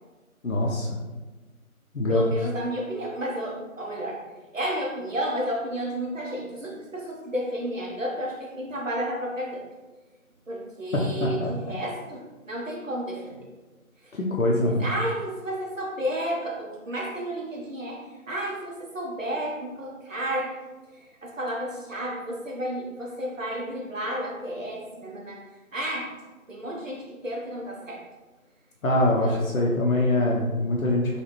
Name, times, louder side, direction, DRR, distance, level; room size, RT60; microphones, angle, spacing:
voice 1, 0.4-0.9 1.9-2.2 10.9-11.5 14.1-14.9 28.8-31.2, left 1 dB, 70° left, -2 dB, 0.7 m, -23 dB
voice 2, 2.1-4.2 4.5-9.6 10.5-13.5 14.0-14.2 14.5-20.6 20.9-26.2 26.5-28.0 29.2-29.8, right 1 dB, 60° right, -1 dB, 1.0 m, -32 dB
4.0 x 2.5 x 3.0 m, 1.2 s
figure-of-eight pair, 165°, 43 cm